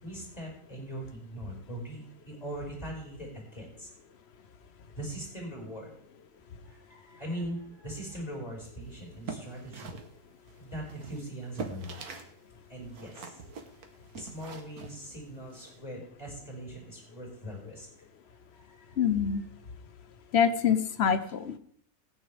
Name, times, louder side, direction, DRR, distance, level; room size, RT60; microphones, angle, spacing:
voice 1, 0.0-3.9 4.9-5.9 6.6-10.0 10.6-12.0 12.7-13.4 14.1-17.9 18.3-19.0, right 1 dB, 20° left, -1 dB, 5.0 m, -41 dB
sound 1, 9.0-12.4 12.6-15.8, right 5 dB, 60° right, 1.6 m, -44 dB
voice 2, 19.0-19.4 20.3-21.6, left 7 dB, 50° left, 11 dB, 0.8 m, -25 dB
17.5 x 9.5 x 3.4 m, 0.64 s
omnidirectional pair, 1.9 m